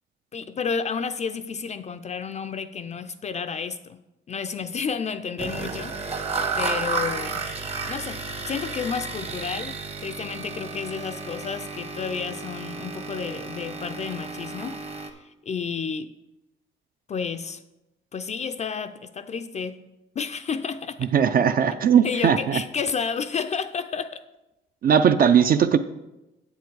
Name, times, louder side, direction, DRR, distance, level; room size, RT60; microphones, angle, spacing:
voice 1, 0.3-4.0 4.3-6.3 6.6-7.4 7.8-16.1 17.1-17.6 18.1-19.9 20.2-21.1 22.0-24.2, left 6 dB, 35° left, 0.4 m, -31 dB
sound 1, 5.4-15.1, right 4 dB, 30° right, 0.9 m, -32 dB
voice 2, 21.1-22.6 24.8-25.8, right 8 dB, 45° right, 0.4 m, -18 dB
8.0 x 7.1 x 4.6 m
cardioid pair, 120°, 20 cm